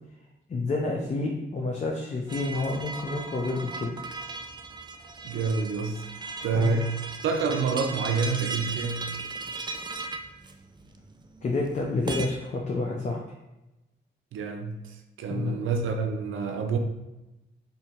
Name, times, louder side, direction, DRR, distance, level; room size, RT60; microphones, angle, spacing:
voice 1, 0.5-3.9 6.5-6.8 11.4-13.2 15.3-15.6, left 3 dB, 35° left, 0 dB, 0.5 m, -29 dB
sound 1, 2.3-12.3, right 3 dB, 20° right, 0.4 m, -37 dB
voice 2, 5.2-6.1 6.4-7.0 7.2-9.1 14.3-16.8, right 4 dB, 90° right, 5 dB, 0.5 m, -28 dB
2.7 x 2.7 x 4.3 m, 0.99 s
cardioid pair, 75°, 20 cm